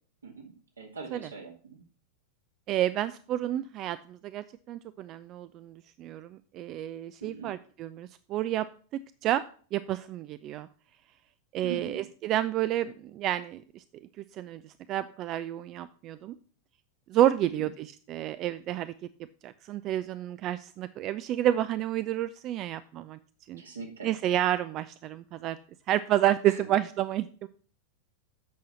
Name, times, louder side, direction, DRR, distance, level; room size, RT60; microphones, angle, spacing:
voice 1, 0.2-1.8 7.2-7.5 11.6-12.1 17.5-17.7 23.6-24.1 26.5-26.7, right 5 dB, 75° right, 1 dB, 2.4 m, -42 dB
voice 2, 2.7-8.7 9.2-9.4 9.7-10.7 11.5-13.8 14.4-16.4 17.1-18.9 19.4-23.2 23.5-23.6 24.0-25.6 25.9-27.5, right 12 dB, 35° right, 14 dB, 0.4 m, -30 dB
8.4 x 6.2 x 5.5 m, 0.42 s
figure-of-eight pair, 90°, 0 cm